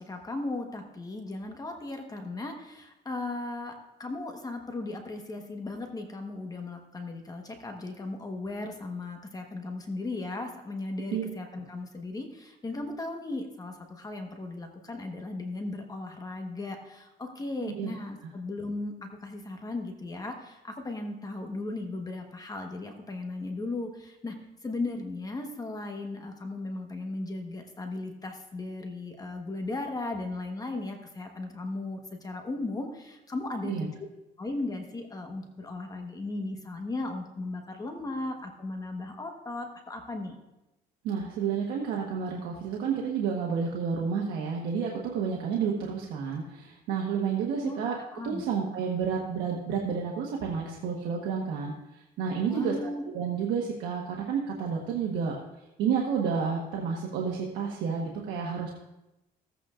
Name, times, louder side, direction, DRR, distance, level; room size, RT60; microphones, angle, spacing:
voice 1, 0.0-24.3 24.6-33.9 34.4-40.4 47.6-48.4 52.5-53.0, left 2 dB, 20° left, 3 dB, 1.2 m, -36 dB
voice 2, 41.0-47.9 48.2-55.4 55.8-58.8, right 6 dB, 90° right, -1 dB, 1.2 m, -30 dB
15.0 x 8.3 x 2.5 m, 0.95 s
cardioid pair, 110°, 17 cm